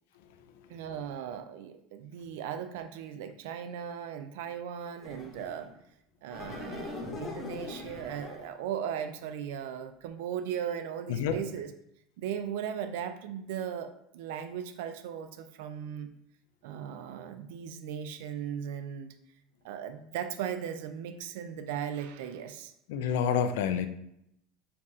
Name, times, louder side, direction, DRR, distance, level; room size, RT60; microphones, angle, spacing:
voice 1, 0.7-5.7 6.2-11.7 12.2-16.1 16.6-19.1 19.6-22.7, right 8 dB, 80° right, 9 dB, 0.3 m, -37 dB
sound 1, 5.0-5.7 6.3-8.6, left 2 dB, 20° left, 0.9 m, -41 dB
voice 2, 22.9-23.9, left 7 dB, 85° left, 9 dB, 0.4 m, -28 dB
6.5 x 2.4 x 2.7 m, 0.77 s
cardioid pair, 160°, 0 cm